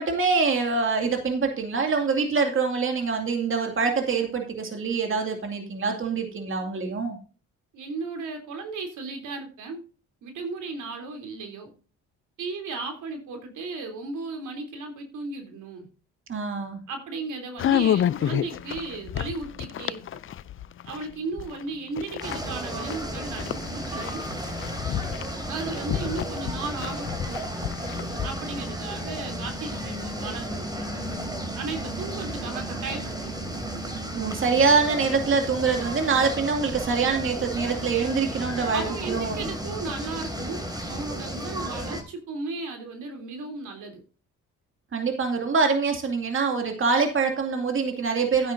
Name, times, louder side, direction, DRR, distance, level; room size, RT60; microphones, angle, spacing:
voice 1, 0.0-7.2 16.3-16.8 34.1-38.8 39.1-39.5 44.9-48.5, right 4 dB, 45° right, 3 dB, 2.4 m, -24 dB
voice 2, 7.7-9.8 10.2-11.7 12.4-15.9 16.9-20.2 20.8-24.2 25.5-27.5 28.2-31.1 31.5-33.7 38.7-44.0, right 3 dB, 75° right, 5 dB, 3.3 m, -35 dB
sound 1, 17.6-21.6 22.0-28.3, left 10 dB, 45° left, 0.5 m, -29 dB
sound 2, 22.2-42.0, right 1 dB, 15° right, 3.1 m, -33 dB
13.0 x 9.8 x 2.6 m, 0.36 s
cardioid pair, 90°, 30 cm